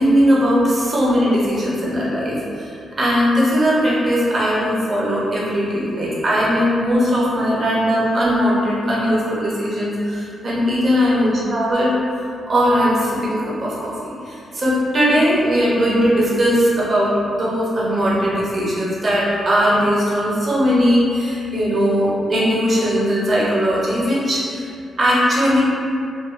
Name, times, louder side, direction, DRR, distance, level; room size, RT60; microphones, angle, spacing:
voice 1, 0.0-2.7 3.0-11.9 12.5-24.7 25.0-25.6, equal, 30° right, -6 dB, 0.5 m, -19 dB
2.5 x 2.2 x 2.4 m, 2.6 s
wide cardioid pair, 165°, 0 cm